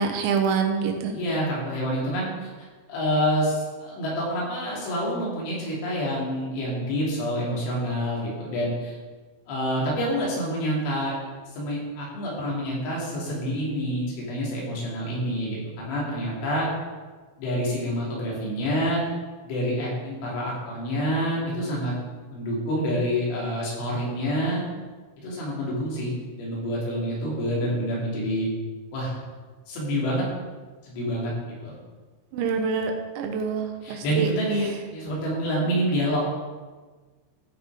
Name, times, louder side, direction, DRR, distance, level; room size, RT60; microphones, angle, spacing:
voice 1, 0.0-1.2 32.3-34.3, right 5 dB, 75° right, 4 dB, 3.2 m, -26 dB
voice 2, 1.1-9.0 9.5-11.2 11.5-16.7 17.4-19.0 19.4-21.9 22.3-24.6 25.2-28.5 28.9-29.2 29.7-30.3 30.8-31.3 31.6-31.7 33.8-36.2, equal, 75° left, -5 dB, 5.5 m, -27 dB
15.5 x 6.0 x 4.9 m, 1.4 s
omnidirectional pair, 5.7 m